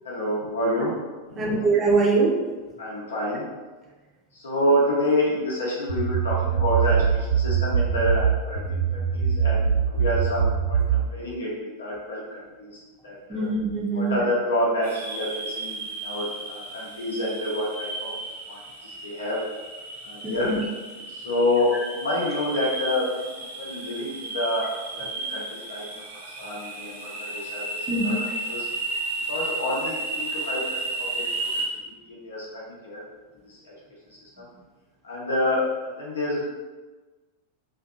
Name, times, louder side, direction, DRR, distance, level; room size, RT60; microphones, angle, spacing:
voice 1, 0.0-1.7 2.8-3.4 4.3-11.5 11.8-13.5 13.9-18.1 18.5-19.4 20.0-20.5 21.1-23.3 23.6-28.1 28.5-28.7 29.3-31.3 32.0-33.0 33.4-33.7 34.1-34.5 35.0-36.5, left 1 dB, 65° left, -5 dB, 0.6 m, -28 dB
voice 2, 1.4-2.4 13.3-14.2 20.2-20.6 21.7-21.8 27.9-28.2, right 3 dB, 25° right, -2 dB, 0.6 m, -23 dB
sound 1, 5.9-11.1, right 7 dB, 85° right, 1.2 m, -23 dB
sound 2, 14.8-31.7, right 2 dB, 55° right, 0.7 m, -33 dB
2.5 x 2.5 x 2.5 m, 1.3 s
figure-of-eight pair, 90°, 0 cm